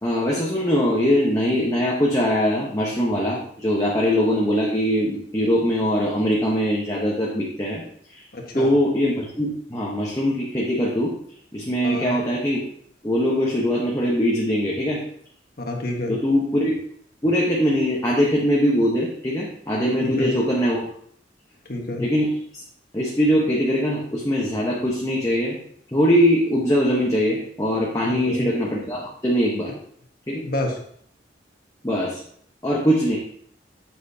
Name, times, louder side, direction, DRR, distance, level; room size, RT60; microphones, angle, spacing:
voice 1, 0.0-7.8 8.1-8.2 8.5-11.1 11.5-12.6 13.0-15.0 16.1-16.7 17.2-20.9 22.0-22.6 22.9-25.5 25.9-29.7 30.3-30.4 31.8-32.2 32.6-33.2, equal, 20° left, -4 dB, 1.2 m, -22 dB
voice 2, 8.3-8.7 11.8-12.1 15.6-16.2 20.0-20.3 21.7-22.1 28.0-28.5 30.4-30.8, left 1 dB, 55° left, 1 dB, 1.5 m, -28 dB
8.2 x 7.7 x 2.8 m, 0.63 s
head